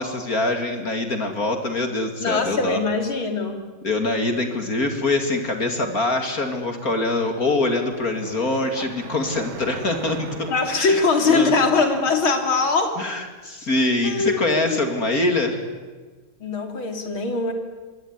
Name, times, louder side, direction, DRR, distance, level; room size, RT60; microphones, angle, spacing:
voice 1, 0.0-2.8 3.8-10.5 10.8-11.0 11.3-11.5 13.0-15.6, left 2 dB, 45° left, 6 dB, 2.9 m, -24 dB
voice 2, 2.2-3.6 10.5-13.0 14.0-14.9 16.4-17.5, left 4 dB, 85° left, 5 dB, 3.9 m, -22 dB
sound 1, 7.8-12.7, right 6 dB, 80° right, 2.3 m, -41 dB
26.5 x 22.0 x 9.7 m, 1.3 s
omnidirectional pair, 2.2 m